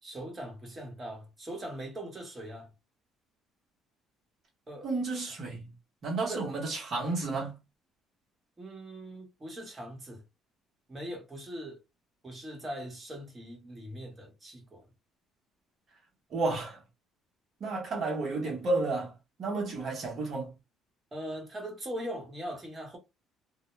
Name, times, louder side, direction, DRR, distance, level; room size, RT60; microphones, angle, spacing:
voice 1, 0.0-2.7 4.7-4.9 5.3-5.4 6.2-6.5 8.6-10.2 10.9-11.8 12.2-14.8 21.1-23.0, right 1 dB, 25° right, 1.1 m, -41 dB
voice 2, 4.8-5.7 6.0-7.5 16.3-16.8 17.6-19.1 19.4-20.5, right 3 dB, 50° right, 0.8 m, -31 dB
2.1 x 2.1 x 3.0 m
cardioid pair, 95°, 0 cm